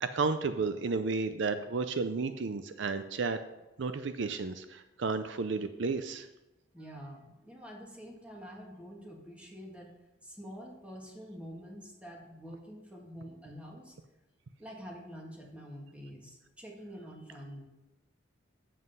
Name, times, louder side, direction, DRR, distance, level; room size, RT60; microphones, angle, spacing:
voice 1, 0.0-3.4 3.8-6.3, right 4 dB, 65° right, 10 dB, 0.5 m, -32 dB
voice 2, 6.7-9.9 10.2-14.0 14.6-17.6, equal, 5° right, -2 dB, 1.7 m, -47 dB
8.0 x 7.5 x 5.4 m, 1.0 s
head